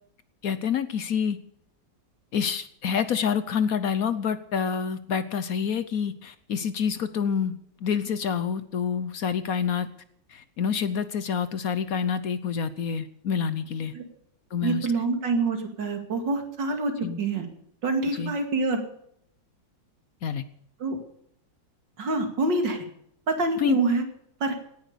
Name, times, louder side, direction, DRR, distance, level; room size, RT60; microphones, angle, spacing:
voice 1, 0.4-1.4 2.3-9.9 10.3-13.9 14.5-14.9 17.0-17.2 18.1-18.3 20.2-20.4 23.6-23.8, left 7 dB, 60° left, 13 dB, 1.1 m, -27 dB
voice 2, 14.6-17.5 17.8-18.8 20.8-21.0 22.0-22.8 23.3-24.0 24.4-24.5, right 3 dB, 75° right, 5 dB, 3.0 m, -26 dB
17.5 x 10.5 x 6.7 m, 0.69 s
omnidirectional pair, 1.9 m